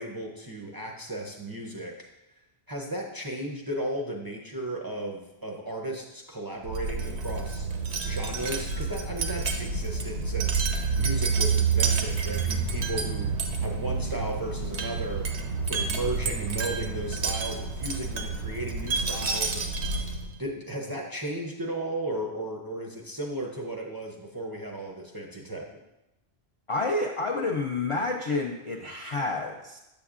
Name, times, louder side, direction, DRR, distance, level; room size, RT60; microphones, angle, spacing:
voice 1, 0.0-2.1 2.7-7.7 8.1-10.6 10.9-13.3 13.6-15.3 15.7-19.7 20.4-25.6, right 1 dB, 30° right, -1 dB, 0.4 m, -35 dB
Wind chime, 6.6-20.4, right 4 dB, 90° right, 1.0 m, -29 dB
voice 2, 26.7-29.8, left 3 dB, 50° left, -1 dB, 0.4 m, -29 dB
7.1 x 6.9 x 2.4 m, 0.94 s
omnidirectional pair, 1.1 m